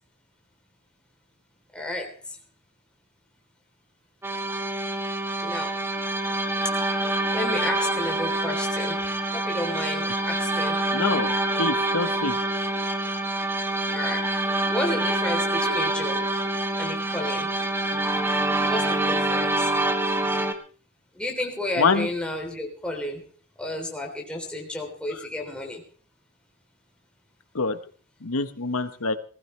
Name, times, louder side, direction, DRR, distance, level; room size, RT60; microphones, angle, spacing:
voice 1, 1.7-2.1 5.4-5.8 7.3-10.9 13.9-16.3 16.8-17.5 18.6-19.7 21.1-23.2 23.6-25.8, left 1 dB, 5° left, 1 dB, 3.4 m, -32 dB
sound 1, 4.2-20.5, right 2 dB, 10° right, 1.3 m, -26 dB
voice 2, 10.9-12.4 21.8-22.1 27.5-27.8 28.2-29.1, left 4 dB, 75° left, 10 dB, 1.2 m, -25 dB
20.0 x 15.5 x 3.3 m, 0.40 s
head